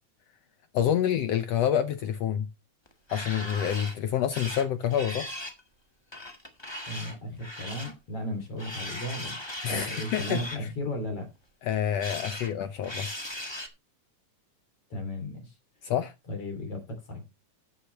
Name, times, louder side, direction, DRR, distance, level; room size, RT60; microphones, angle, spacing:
voice 1, 0.7-2.5 3.1-5.3 9.6-10.7 11.6-13.1 15.8-16.1, left 9 dB, 75° left, 1.5 m, -28 dB
sound 1, 2.9-4.0 4.3-5.6 6.1-7.9 8.6-10.6 11.7-12.5 12.8-13.7, left 1 dB, 25° left, 0.5 m, -38 dB
voice 2, 6.9-9.4 9.7-11.3 14.9-15.5 16.3-17.3, left 1 dB, 50° left, 3.8 m, -35 dB
17.0 x 6.6 x 3.1 m
omnidirectional pair, 3.5 m